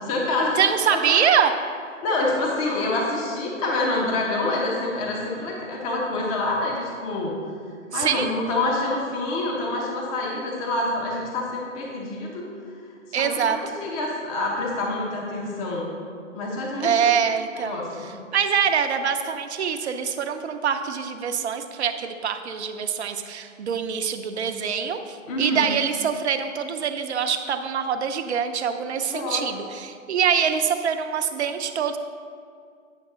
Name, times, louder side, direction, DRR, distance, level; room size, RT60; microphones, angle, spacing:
voice 1, 0.0-0.6 0.9-1.2 2.0-7.4 7.9-12.5 13.1-15.9 16.3-17.1 17.5-18.1 25.3-25.7 29.1-29.4, left 2 dB, 25° left, -2 dB, 1.0 m, -27 dB
voice 2, 0.6-1.5 7.9-8.4 13.1-13.6 16.8-17.8 18.3-32.0, right 7 dB, 55° right, 7 dB, 0.7 m, -24 dB
9.1 x 6.0 x 3.7 m, 2.3 s
figure-of-eight pair, 130°, 40 cm